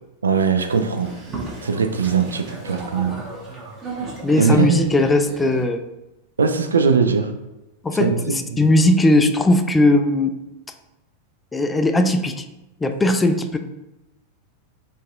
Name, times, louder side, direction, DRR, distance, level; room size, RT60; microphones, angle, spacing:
voice 1, 0.2-1.1 1.6-3.2 4.4-5.0 6.4-7.3 8.0-8.7, right 5 dB, 70° right, 7 dB, 0.3 m, -20 dB
Boat Water vehicle, 0.7-5.6, right 2 dB, 25° right, 1.0 m, -34 dB
voice 2, 4.2-5.8 7.8-10.3 11.5-12.4 12.8-13.6, left 1 dB, 10° left, 7 dB, 0.3 m, -18 dB
4.0 x 2.5 x 3.6 m, 0.96 s
figure-of-eight pair, 90°, 0 cm